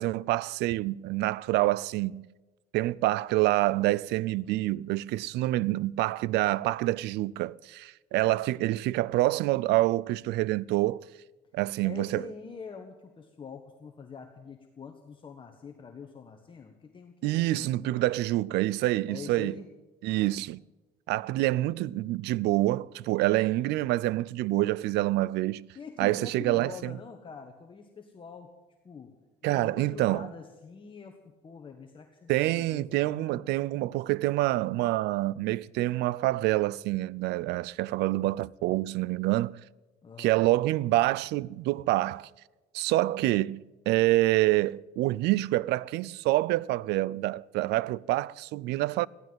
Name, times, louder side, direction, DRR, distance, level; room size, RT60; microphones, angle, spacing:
voice 1, 0.0-2.3 2.7-11.1 11.5-12.2 17.2-19.5 20.0-20.6 21.1-25.7 26.0-27.0 29.4-30.3 32.3-39.6 40.2-42.3 42.7-49.1, right 17 dB, 80° right, 0.4 m, -27 dB
voice 2, 11.8-18.1 19.1-19.7 20.0-20.3 25.7-28.5 28.8-29.1 29.4-33.5 40.0-40.4, left 6 dB, 30° left, 1.5 m, -45 dB
15.0 x 12.5 x 7.8 m
cardioid pair, 110°, 17 cm